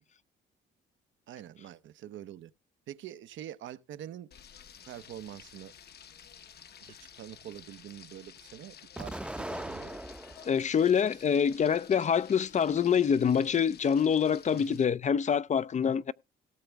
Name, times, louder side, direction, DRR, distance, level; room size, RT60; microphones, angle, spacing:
voice 1, 1.3-2.5 2.9-4.3 4.9-5.7 6.8-9.9 14.5-14.8 15.8-16.0, right 11 dB, 75° right, 0.8 m, -45 dB
Frying (food), 4.3-14.8, left 8 dB, 55° left, 1.0 m, -52 dB
Explosion, 9.0-10.6 11.1-12.0, right 1 dB, 5° right, 0.6 m, -40 dB
voice 2, 10.5-16.1, left 7 dB, 35° left, 0.5 m, -26 dB
17.5 x 7.1 x 3.4 m
cardioid pair, 90°, 20 cm